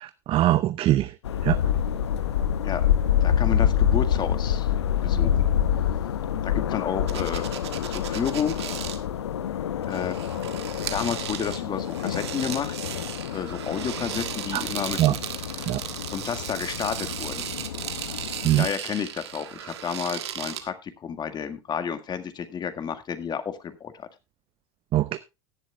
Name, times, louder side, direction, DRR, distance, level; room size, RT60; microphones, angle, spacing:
voice 1, 0.0-1.1 1.4-1.6 14.5-14.6 15.0-15.1 15.7-15.8 18.4-18.7 24.9-25.2, right 14 dB, 40° right, 14 dB, 0.6 m, -22 dB
sound 1, 1.2-18.7, left 9 dB, 75° left, 0.9 m, -27 dB
voice 2, 3.2-4.7 5.0-5.5 6.4-7.5 7.9-8.6 9.9-10.2 10.9-13.0 13.3-15.8 16.1-17.5 18.6-24.1, left 7 dB, 30° left, 9 dB, 1.8 m, -31 dB
sound 2, 7.1-9.0 9.8-20.7, right 10 dB, 75° right, 1.6 m, -36 dB
17.0 x 11.0 x 2.3 m, 0.25 s
figure-of-eight pair, 80°, 14 cm